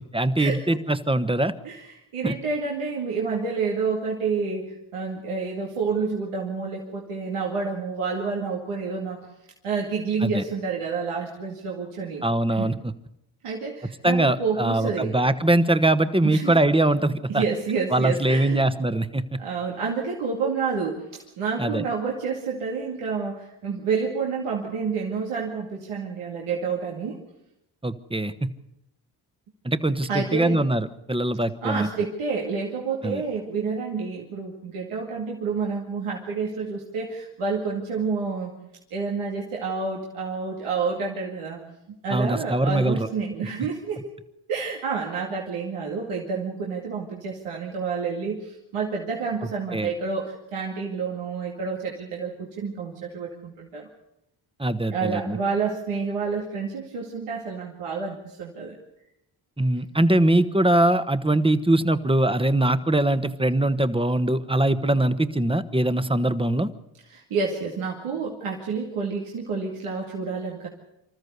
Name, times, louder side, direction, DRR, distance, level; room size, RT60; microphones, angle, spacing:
voice 1, 0.1-1.5 2.2-2.3 10.2-10.4 12.2-12.9 14.0-17.4 17.9-19.2 21.6-21.8 27.8-28.5 29.6-31.9 33.0-33.2 42.1-43.1 49.7-49.9 54.6-55.4 59.6-66.7, right 1 dB, 10° right, 11 dB, 1.3 m, -22 dB
voice 2, 1.6-9.3 9.6-12.2 12.6-12.7 13.4-15.2 16.2-16.6 17.3-18.6 19.4-27.2 30.1-30.6 31.6-38.5 38.9-41.6 42.0-44.1 44.5-53.9 54.9-58.8 67.1-70.7, right 5 dB, 90° right, -2 dB, 2.4 m, -29 dB
25.5 x 13.5 x 8.2 m, 0.86 s
supercardioid pair, 45°, 50 cm